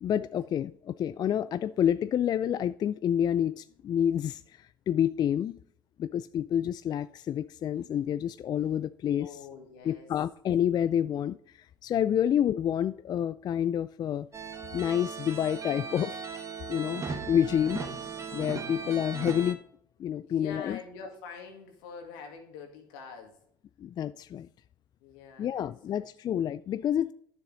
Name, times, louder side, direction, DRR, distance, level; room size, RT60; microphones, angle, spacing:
voice 1, 0.0-5.5 6.0-9.4 9.9-14.3 14.7-16.2 16.7-17.8 18.3-19.6 20.0-20.8 23.8-24.5 25.4-27.1, left 9 dB, 40° left, 0.3 m, -28 dB
voice 2, 9.2-10.1 20.2-23.4 25.0-26.2, left 5 dB, 80° left, 2.1 m, -45 dB
sound 1, 14.3-19.5, right 5 dB, 25° right, 1.4 m, -38 dB
9.9 x 6.9 x 3.9 m
hypercardioid pair, 75°, 11 cm